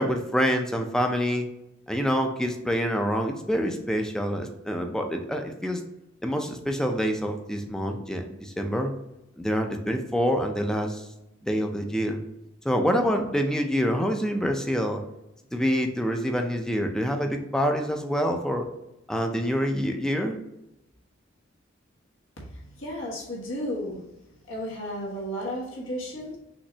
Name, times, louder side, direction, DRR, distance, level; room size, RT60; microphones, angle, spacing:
voice 1, 0.0-1.5 1.9-5.8 6.2-8.9 9.4-11.0 11.4-12.2 12.6-15.0 15.5-18.7 19.1-20.4, equal, 5° left, 4 dB, 0.4 m, -26 dB
voice 2, 22.5-24.0 24.5-26.4, equal, 75° left, -3 dB, 1.4 m, -33 dB
5.9 x 3.2 x 2.8 m, 0.92 s
head